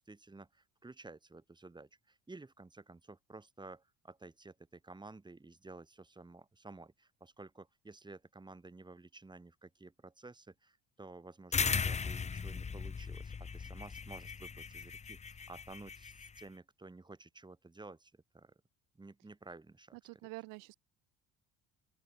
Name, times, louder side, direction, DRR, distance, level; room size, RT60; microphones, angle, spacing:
voice 1, 0.0-18.5 18.9-20.0, right 3 dB, 15° right, 6.6 m, -53 dB
sound 1, 11.5-16.4, left 5 dB, 20° left, 1.1 m, -37 dB
voice 2, 19.9-20.7, right 26 dB, 85° right, 2.5 m, -47 dB
open air
cardioid pair, 115°, 31 cm